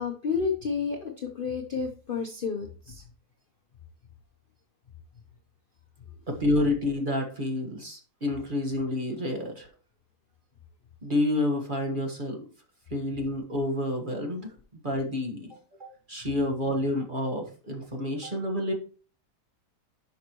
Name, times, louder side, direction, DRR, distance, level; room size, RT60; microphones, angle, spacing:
voice 1, 0.0-3.0, left 5 dB, 40° left, 4 dB, 0.9 m, -31 dB
voice 2, 6.3-9.7 11.0-12.4 12.9-15.5 16.1-18.7, left 1 dB, 30° right, 2 dB, 1.6 m, -29 dB
11.5 x 5.7 x 3.0 m, 0.39 s
omnidirectional pair, 1.8 m